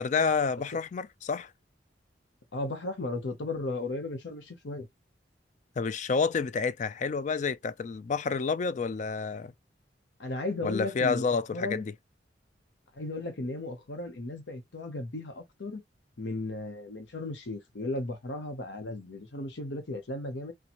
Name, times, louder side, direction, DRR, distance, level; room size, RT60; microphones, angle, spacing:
voice 1, 0.0-1.5 5.8-9.5 10.6-11.9, left 5 dB, 45° left, 0.3 m, -29 dB
voice 2, 2.5-4.9 10.2-11.8 12.9-15.8 16.2-20.5, left 2 dB, 90° left, 0.8 m, -35 dB
4.2 x 2.2 x 2.9 m
head